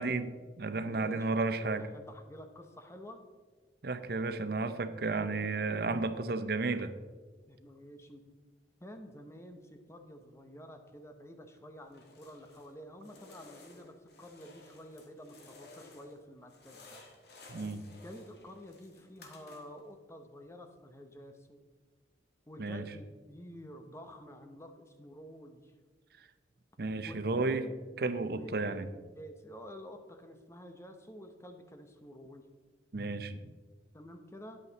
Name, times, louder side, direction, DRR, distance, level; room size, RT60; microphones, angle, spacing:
voice 1, 0.0-1.9 3.8-6.9 17.5-17.8 22.6-22.8 26.8-27.7 28.0-28.9 32.9-33.5, right 3 dB, 60° right, 10 dB, 0.6 m, -33 dB
voice 2, 0.8-1.4 1.8-3.2 5.4-5.6 7.5-8.2 8.8-17.0 18.0-21.6 22.5-25.7 27.0-27.8 28.2-28.6 29.1-32.5 33.9-34.6, equal, 15° left, 6 dB, 0.8 m, -50 dB
sound 1, 11.9-12.7 13.0-16.2 16.5-19.9, left 2 dB, 65° left, 1.6 m, -56 dB
9.5 x 8.3 x 4.0 m, 1.4 s
head